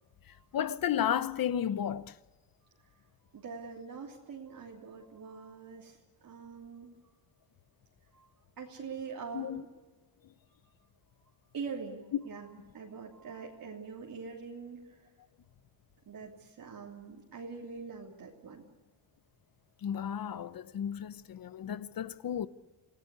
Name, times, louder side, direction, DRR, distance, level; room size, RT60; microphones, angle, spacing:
voice 1, 0.3-2.2 9.3-9.6 19.8-22.5, left 9 dB, 50° left, 0.9 m, -33 dB
voice 2, 3.2-7.0 8.1-8.3 8.6-9.7 11.2-11.3 11.5-14.9 16.1-18.6, right 5 dB, 50° right, 3.2 m, -44 dB
27.5 x 18.0 x 8.3 m
wide cardioid pair, 150°, 44 cm